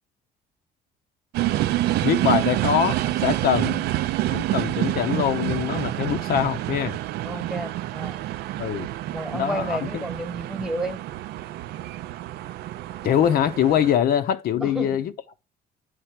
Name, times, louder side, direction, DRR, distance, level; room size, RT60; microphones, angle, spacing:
sound 1, 1.3-14.0, right 15 dB, 75° right, 0.5 m, -27 dB
voice 1, 2.0-3.8 4.3-7.0 8.6-8.9 9.3-10.0 13.0-15.1, left 9 dB, 60° left, 0.6 m, -23 dB
voice 2, 7.2-8.2 9.1-11.0 14.5-15.0, right 1 dB, 5° right, 1.2 m, -32 dB
9.5 x 3.4 x 5.8 m
cardioid pair, 110°, 17 cm